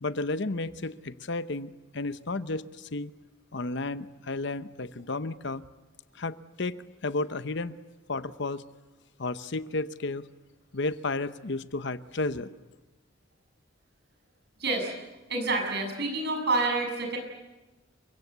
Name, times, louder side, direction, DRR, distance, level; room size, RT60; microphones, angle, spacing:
voice 1, 0.0-3.1 3.5-5.6 6.1-6.8 7.0-7.8 8.1-8.6 9.2-10.3 10.7-12.5, left 2 dB, 65° left, 13 dB, 0.9 m, -32 dB
voice 2, 14.6-14.9 15.3-17.2, right 3 dB, 60° right, 3 dB, 7.2 m, -28 dB
29.0 x 24.0 x 8.2 m, 1.1 s
head